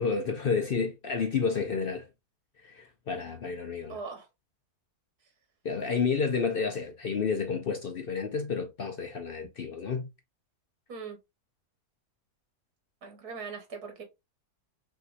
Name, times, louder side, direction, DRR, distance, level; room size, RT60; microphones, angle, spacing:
voice 1, 0.0-2.1 2.6-4.0 5.6-10.1, left 5 dB, 65° left, 0.5 m, -30 dB
voice 2, 3.9-4.3 10.9-11.2 13.0-14.0, right 5 dB, 75° right, 2.0 m, -40 dB
5.9 x 2.8 x 2.5 m
omnidirectional pair, 1.6 m